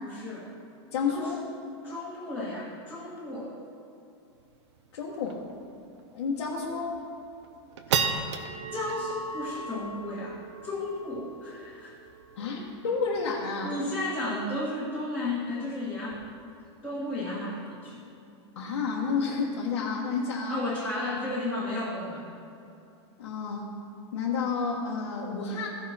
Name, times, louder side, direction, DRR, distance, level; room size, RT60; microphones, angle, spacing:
voice 1, 0.0-0.5 1.1-1.3 1.8-3.5 7.9-8.0 8.7-11.9 13.6-16.2 16.8-18.0 20.5-22.2, left 2 dB, 5° left, -11 dB, 1.7 m, -33 dB
voice 2, 0.9-1.4 4.9-5.4 6.1-6.9 12.4-13.7 18.5-20.6 23.2-23.6 24.1-25.7, left 5 dB, 80° left, -5 dB, 1.5 m, -30 dB
sound 1, 4.4-4.5 4.8-4.9 5.3-5.5 6.0-6.1 6.6-7.0 7.4-14.0, right 5 dB, 75° right, 0.8 m, -35 dB
16.0 x 5.6 x 4.3 m, 2.6 s
supercardioid pair, 170°, 15 cm